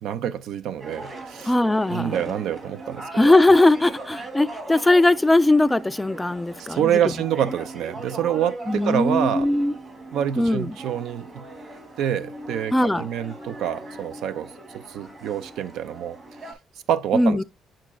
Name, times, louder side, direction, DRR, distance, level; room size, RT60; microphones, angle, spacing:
voice 1, 0.0-1.5 1.9-3.3 6.7-9.5 10.1-11.4 12.0-16.2 16.9-17.4, right 10 dB, 85° right, 0.5 m, -26 dB
sound 1, 0.8-16.5, right 2 dB, 45° right, 2.5 m, -39 dB
voice 2, 1.4-2.2 3.1-6.9 8.7-9.7 10.4-10.8 12.7-13.1 17.1-17.4, left 2 dB, 10° left, 0.4 m, -19 dB
7.4 x 6.0 x 2.3 m
cardioid pair, 90°, 0 cm